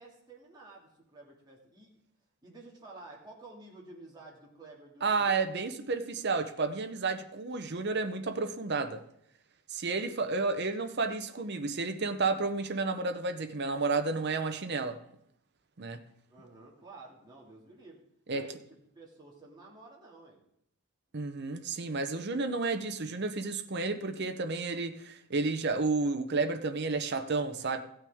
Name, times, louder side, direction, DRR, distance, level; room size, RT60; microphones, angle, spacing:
voice 1, 0.0-1.9 2.4-5.4 16.3-18.0 18.3-20.4, right 2 dB, 20° right, 2.3 m, -52 dB
voice 2, 5.0-9.0 9.7-15.0 15.8-16.0 18.3-18.4 21.1-27.8, right 3 dB, 50° right, 0.7 m, -31 dB
15.0 x 8.9 x 3.6 m
head